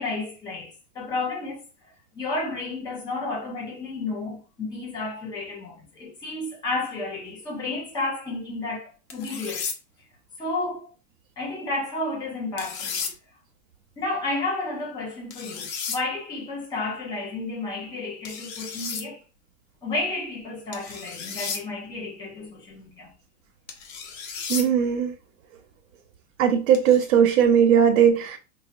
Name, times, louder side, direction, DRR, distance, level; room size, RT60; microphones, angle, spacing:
voice 1, 0.0-1.6 2.1-9.7 10.4-10.9 11.4-13.1 14.0-19.2 19.8-23.1, left 2 dB, 10° left, 0.7 m, -31 dB
sound 1, 9.1-9.8 12.6-13.1 15.3-16.0 18.2-19.0 20.7-21.6 23.7-24.7 26.7-27.1, left 6 dB, 70° left, 1.0 m, -33 dB
voice 2, 24.5-25.1 26.4-28.4, right 8 dB, 60° right, 0.9 m, -19 dB
5.5 x 2.2 x 2.6 m
supercardioid pair, 170°, 41 cm